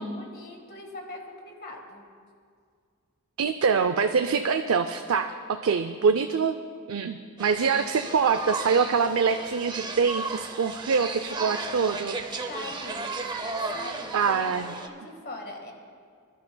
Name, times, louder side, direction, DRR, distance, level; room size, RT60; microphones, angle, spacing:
voice 1, 0.0-2.0 12.5-13.2 13.7-15.7, left 2 dB, 50° left, 2 dB, 1.7 m, -41 dB
voice 2, 3.4-6.5 6.9-12.2 14.1-14.8, right 5 dB, 70° right, 8 dB, 0.4 m, -24 dB
sound 1, 7.4-14.9, right 3 dB, 20° right, 0.7 m, -35 dB
26.0 x 12.0 x 2.3 m, 2.2 s
head